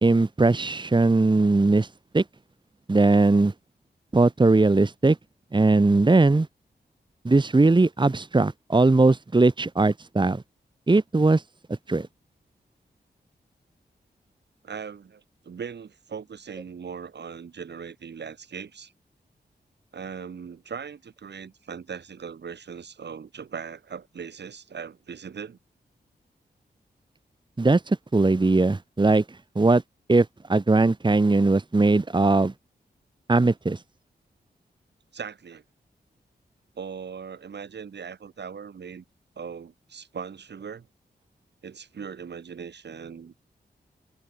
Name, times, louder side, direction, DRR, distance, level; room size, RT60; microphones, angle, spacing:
voice 1, 0.0-1.9 2.1-2.2 2.9-3.5 4.1-5.2 5.5-6.5 7.2-10.4 10.9-11.4 11.9-12.1 27.6-29.2 29.5-29.8 30.1-32.5 33.3-33.8, right 3 dB, 25° right, 1.5 m, -20 dB
voice 2, 14.6-18.9 19.9-25.6 35.1-35.6 36.7-39.0 39.4-40.9 41.6-43.3, right 6 dB, 80° right, 6.6 m, -39 dB
cardioid pair, 65°, 18 cm